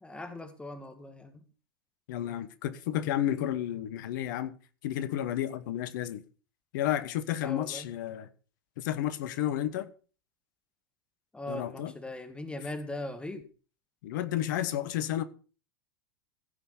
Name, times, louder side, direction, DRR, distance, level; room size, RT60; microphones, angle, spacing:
voice 1, 0.0-1.4 7.4-7.9 11.3-13.5, left 1 dB, 10° left, 1.9 m, -40 dB
voice 2, 2.1-4.6 4.8-6.2 6.7-8.3 8.8-9.9 11.5-11.9 14.0-15.2, left 12 dB, 60° left, 1.2 m, -31 dB
15.5 x 5.6 x 5.8 m
figure-of-eight pair, 85°, 12 cm